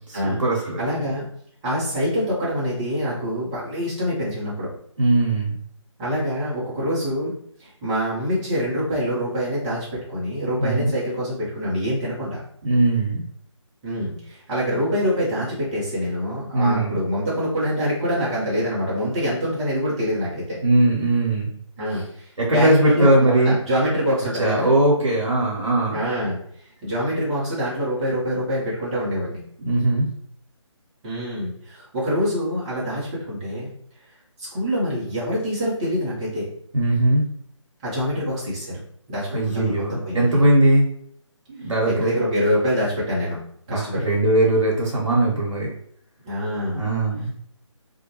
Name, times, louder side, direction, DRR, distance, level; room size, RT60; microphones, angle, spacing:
voice 1, 0.1-0.9 5.0-5.5 10.6-10.9 12.6-13.3 16.5-17.0 20.6-21.5 21.9-22.0 22.4-23.6 24.4-26.0 29.6-30.1 36.7-37.2 39.3-40.9 41.5-42.1 43.7-45.7 46.7-47.3, right 1 dB, 70° right, -4 dB, 0.8 m, -20 dB
voice 2, 0.8-1.2 1.6-4.7 6.0-7.3 7.6-12.4 13.8-20.6 21.8-24.7 25.9-26.4 26.8-29.4 31.0-33.7 34.5-36.5 37.8-38.8 39.1-40.4 41.8-43.4 43.7-44.1 46.2-46.8, equal, 10° right, -8 dB, 0.6 m, -25 dB
2.4 x 2.1 x 2.9 m, 0.64 s
figure-of-eight pair, 150°, 16 cm